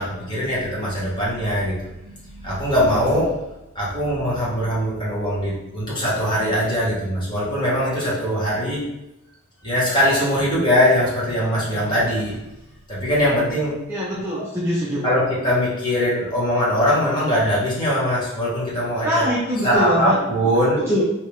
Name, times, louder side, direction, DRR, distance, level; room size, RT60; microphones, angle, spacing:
voice 1, 0.0-3.3 3.7-8.8 9.6-12.4 12.9-13.8 15.0-19.3 19.6-20.8, equal, 20° left, -8 dB, 1.2 m, -21 dB
voice 2, 13.9-15.0 19.0-20.2 20.9-21.0, equal, 10° right, -7 dB, 0.4 m, -23 dB
3.3 x 2.7 x 3.0 m, 0.93 s
head